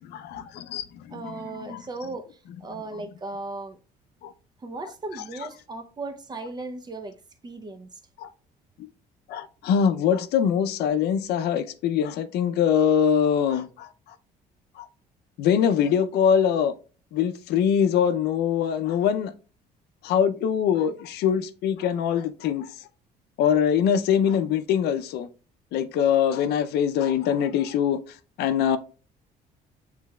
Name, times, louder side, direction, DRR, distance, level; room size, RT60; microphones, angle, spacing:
voice 1, 0.1-1.8 4.2-4.3 8.2-8.3 9.3-13.9 14.8-14.9 15.4-16.7 17.1-19.3 20.0-22.7 23.4-25.3 25.7-28.8, left 8 dB, 75° left, 0.5 m, -23 dB
voice 2, 1.1-3.8 4.6-7.2 7.4-8.0, right 3 dB, 25° right, 0.6 m, -37 dB
7.3 x 3.3 x 2.2 m
cardioid pair, 110°, 17 cm